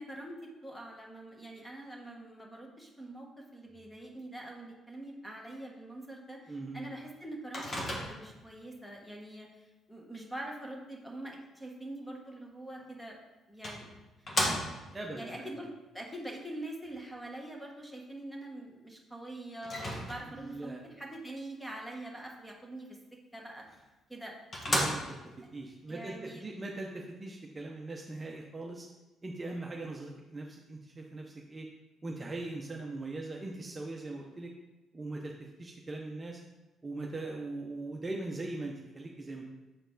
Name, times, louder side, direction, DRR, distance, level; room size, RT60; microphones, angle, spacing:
voice 1, 0.0-7.7 8.1-9.5 9.9-13.2 13.5-13.9 14.4-14.6 15.2-23.0 23.3-23.6 24.1-24.3 25.9-26.5, right 1 dB, 5° left, 0 dB, 1.3 m, -44 dB
voice 2, 6.5-6.8 14.4-15.5 20.3-20.8 24.7-28.9 29.2-31.7 32.0-34.5 34.9-35.3 35.6-36.4 36.8-39.4, right 2 dB, 25° right, 0 dB, 0.7 m, -40 dB
Microwave oven, 7.5-8.4 12.8-12.9 13.6-15.0 19.6-20.5 23.6-23.7 24.2-24.3 24.5-25.4, left 1 dB, 35° left, 1.5 m, -34 dB
7.0 x 4.4 x 3.9 m, 1.1 s
cardioid pair, 105°, 0 cm